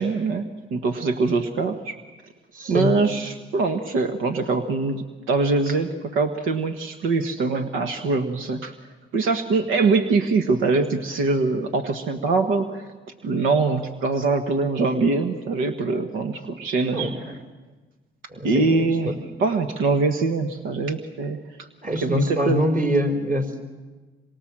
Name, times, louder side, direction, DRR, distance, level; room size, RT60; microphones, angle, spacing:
voice 1, 0.0-2.0 2.7-8.7 9.1-12.9 13.2-17.3 18.4-21.7 22.0-22.7, right 3 dB, 85° right, 6 dB, 1.4 m, -23 dB
voice 2, 2.5-2.9 16.9-17.1 18.3-19.1 21.8-23.6, equal, 40° right, 4 dB, 4.1 m, -24 dB
26.5 x 23.5 x 7.5 m, 1.3 s
cardioid pair, 90°, 20 cm